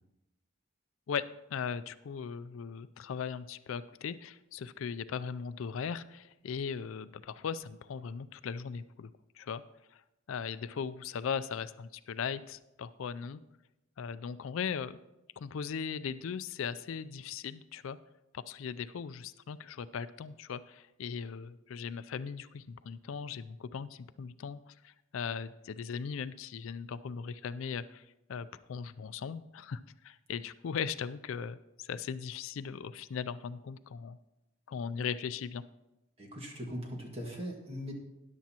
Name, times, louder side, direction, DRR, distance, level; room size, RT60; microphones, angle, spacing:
voice 1, 1.5-9.1 9.4-9.6 9.9-10.0 10.3-13.4 14.0-15.0 15.4-18.0 18.3-28.0 28.3-34.2 34.7-35.6, left 6 dB, 75° left, 14 dB, 0.4 m, -38 dB
voice 2, 36.2-37.9, equal, 30° right, 0 dB, 1.7 m, -40 dB
13.5 x 10.5 x 2.9 m, 0.92 s
head